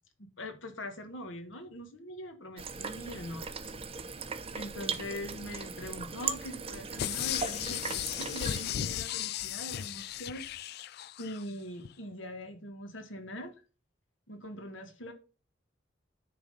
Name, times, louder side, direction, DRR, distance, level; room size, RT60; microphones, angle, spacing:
voice 1, 0.2-3.7 4.1-10.4 11.2-13.5 14.3-15.1, left 1 dB, 80° left, 1.5 m, -42 dB
sound 1, 2.6-8.6, right 5 dB, 30° right, 0.7 m, -38 dB
sound 2, 7.0-11.4 11.9-12.0, left 11 dB, 55° left, 0.3 m, -35 dB
10.0 x 3.6 x 5.5 m
head